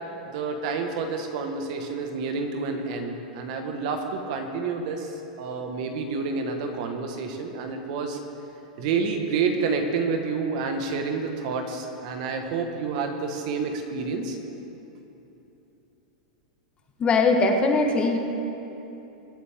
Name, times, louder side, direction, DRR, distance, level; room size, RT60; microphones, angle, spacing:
voice 1, 0.3-8.2 8.8-14.4, right 4 dB, 60° right, 4 dB, 1.6 m, -29 dB
voice 2, 17.0-18.2, left 3 dB, 25° left, 3 dB, 1.4 m, -20 dB
23.0 x 8.6 x 3.7 m, 3.0 s
hypercardioid pair, 125°, 4 cm